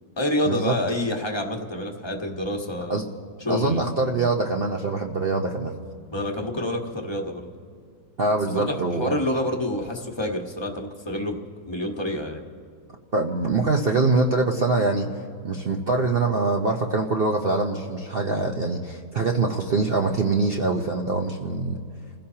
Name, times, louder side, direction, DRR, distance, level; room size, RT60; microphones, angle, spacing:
voice 1, 0.2-3.0 3.4-3.8 6.1-7.5 8.5-11.4 11.7-12.4, left 1 dB, 15° left, 1 dB, 1.3 m, -28 dB
voice 2, 3.5-5.7 8.2-9.1 13.1-15.1 15.4-21.8, right 3 dB, 45° right, 1 dB, 0.8 m, -24 dB
29.0 x 16.0 x 2.9 m, 2.3 s
omnidirectional pair, 1.8 m